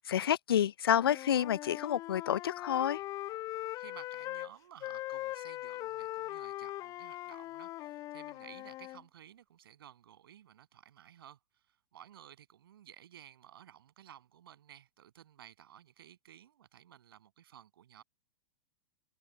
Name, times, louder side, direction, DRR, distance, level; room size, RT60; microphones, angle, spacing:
voice 1, 0.1-3.0, left 10 dB, 60° left, 0.7 m, -29 dB
Wind instrument woodwind instrument, 0.9-4.5 4.8-9.0, left 16 dB, 25° left, 0.4 m, -41 dB
voice 2, 3.8-18.0, right 10 dB, 60° right, 7.4 m, -56 dB
open air
figure-of-eight pair, 100°, 14 cm